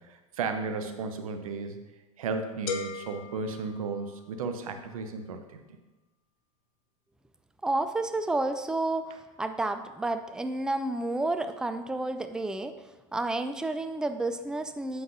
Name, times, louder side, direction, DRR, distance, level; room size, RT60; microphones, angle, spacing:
voice 1, 0.0-1.8 2.2-5.6, right 4 dB, 85° right, 7 dB, 0.7 m, -34 dB
sound 1, 2.7-4.5, left 5 dB, 85° left, 0.7 m, -38 dB
voice 2, 7.6-12.8 13.1-15.0, right 2 dB, 5° right, 9 dB, 0.4 m, -30 dB
7.7 x 5.7 x 2.6 m, 1.1 s
hypercardioid pair, 95°, 18 cm